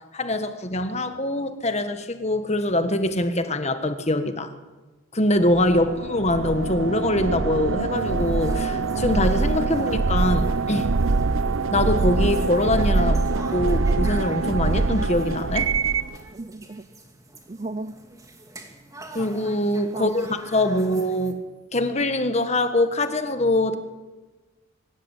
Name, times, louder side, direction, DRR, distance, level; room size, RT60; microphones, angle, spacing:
voice 1, 0.1-4.5 5.1-10.9 11.7-13.2 13.5-15.7 19.1-21.4 21.7-23.8, left 1 dB, 35° left, 9 dB, 1.5 m, -23 dB
sound 1, 5.5-16.1, right 3 dB, 80° right, 0.7 m, -24 dB
sound 2, 7.9-21.3, right 2 dB, 15° right, 2.4 m, -45 dB
voice 2, 9.7-10.0 16.3-16.9 17.5-17.9 19.9-20.4 20.7-20.9, right 2 dB, 30° right, 12 dB, 0.6 m, -37 dB
24.0 x 16.0 x 8.3 m, 1.2 s
head